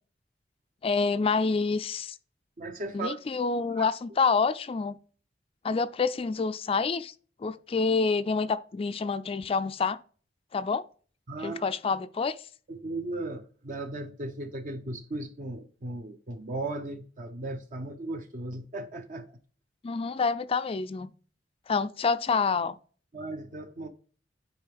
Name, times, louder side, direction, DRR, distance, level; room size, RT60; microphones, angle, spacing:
voice 1, 0.8-2.2 2.9-5.0 5.6-7.1 7.4-10.0 10.5-10.8 11.4-12.4 19.8-21.1 21.7-22.8, left 4 dB, 30° left, 0.3 m, -27 dB
voice 2, 2.6-3.2 3.7-3.8 11.3-11.7 12.7-19.4 23.1-23.9, right 2 dB, 45° right, 0.6 m, -36 dB
9.7 x 3.7 x 3.5 m
head